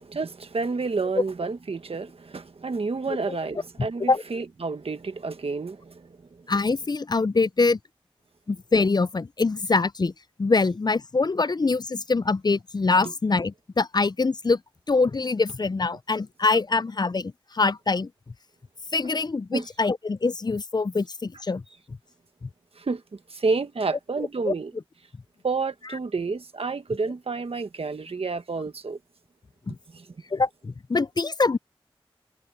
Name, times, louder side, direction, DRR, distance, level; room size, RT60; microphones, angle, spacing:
voice 1, 0.0-6.5 13.0-13.1 19.5-19.7 22.8-24.7 25.4-29.0 29.9-30.1, right 4 dB, 85° right, 1.3 m, -30 dB
voice 2, 6.5-7.8 8.5-10.1 10.4-14.6 14.9-18.1 18.9-21.6 22.4-22.5 24.5-24.6 29.7-29.8 30.3-31.6, left 3 dB, 45° left, 0.4 m, -24 dB
wide cardioid pair, 45°, 10 cm